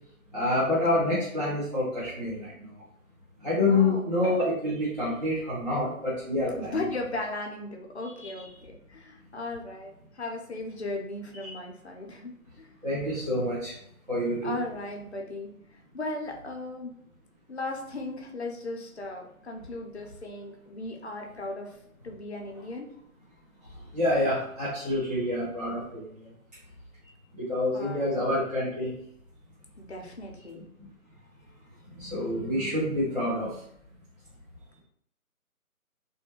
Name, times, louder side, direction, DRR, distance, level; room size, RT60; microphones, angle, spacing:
voice 1, 0.3-2.7 3.4-6.8 8.2-8.3 11.4-11.5 12.8-13.8 14.1-14.5 23.9-26.3 27.4-28.9 31.9-33.6, left 1 dB, 30° right, -11 dB, 0.6 m, -27 dB
voice 2, 3.6-4.1 6.5-12.7 14.4-15.5 15.9-16.9 17.5-21.7 22.0-22.9 27.7-28.4 29.8-30.6, left 2 dB, 50° left, 2 dB, 0.5 m, -37 dB
2.4 x 2.2 x 2.9 m, 0.69 s
figure-of-eight pair, 160°, 44 cm